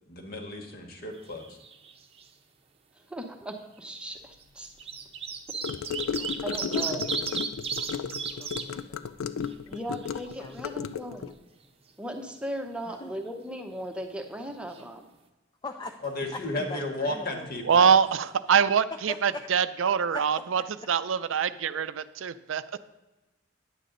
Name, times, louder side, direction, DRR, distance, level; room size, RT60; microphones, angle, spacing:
voice 1, 0.1-1.6 16.0-17.8, left 2 dB, 50° left, 3 dB, 1.5 m, -34 dB
sound 1, 1.2-1.9 2.2-2.3 3.4-3.5 4.4-8.6 9.1-9.2 9.5-10.5 14.4-14.5 14.7-14.8, right 6 dB, 30° right, 0.7 m, -34 dB
voice 2, 3.1-4.7 5.8-6.1 6.4-7.0 9.7-11.4 12.0-15.0 16.6-16.7, right 1 dB, 5° right, 4 dB, 0.8 m, -37 dB
Gurgling / Car passing by / Sink (filling or washing), 5.6-11.3, left 7 dB, 85° left, 0.4 m, -34 dB
voice 3, 6.2-7.2 7.9-8.1 8.4-9.0 10.4-10.8 12.9-13.1 15.6-16.4 16.7-17.5 17.8-17.9 19.1-19.4 20.1-20.2, left 2 dB, 20° left, 5 dB, 0.5 m, -41 dB
voice 4, 17.6-20.6 20.9-22.6, right 7 dB, 70° right, 13 dB, 0.4 m, -24 dB
10.0 x 8.3 x 3.9 m, 1.1 s
head